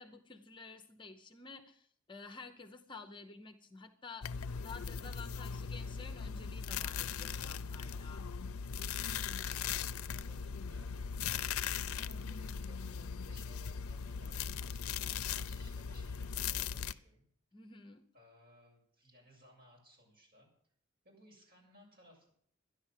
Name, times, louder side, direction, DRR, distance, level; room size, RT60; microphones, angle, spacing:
voice 1, 0.0-4.3 4.6-8.3 17.5-18.0, left 4 dB, 25° left, 8 dB, 0.8 m, -51 dB
sound 1, 4.2-16.9, left 7 dB, 85° left, 0.5 m, -39 dB
voice 2, 10.0-10.9 11.9-17.2 18.1-20.5 21.0-22.3, equal, 45° right, -2 dB, 7.2 m, -62 dB
12.5 x 10.5 x 7.5 m, 0.64 s
head